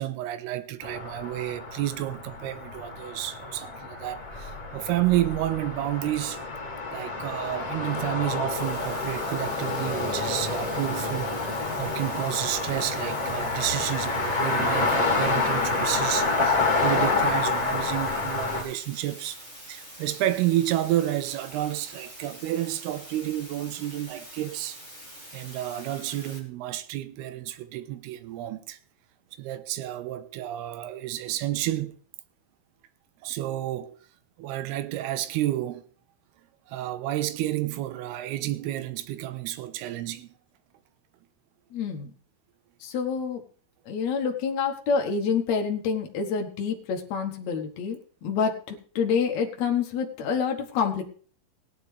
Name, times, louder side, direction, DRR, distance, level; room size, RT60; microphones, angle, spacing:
voice 1, 0.0-6.4 6.9-24.8 25.3-28.8 29.4-32.0 33.2-33.9 34.4-35.8 36.7-40.3, right 14 dB, 75° right, 2.6 m, -30 dB
sound 1, 0.8-18.6, left 3 dB, 25° left, 2.3 m, -28 dB
sound 2, 8.5-26.4, right 1 dB, 25° right, 1.7 m, -45 dB
voice 2, 41.7-42.1 42.8-43.4 43.9-51.0, left 6 dB, 70° left, 1.7 m, -27 dB
17.5 x 10.5 x 3.3 m
omnidirectional pair, 5.2 m